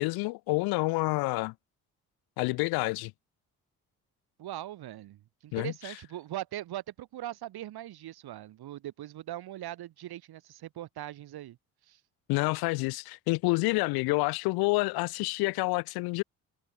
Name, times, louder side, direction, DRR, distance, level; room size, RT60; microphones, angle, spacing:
voice 1, 0.0-1.5 2.4-3.1 5.5-5.9 12.3-16.2, left 24 dB, 60° left, 0.6 m, -28 dB
voice 2, 4.4-11.6 11.9-12.0, right 13 dB, 60° right, 6.2 m, -40 dB
figure-of-eight pair, 50°, 43 cm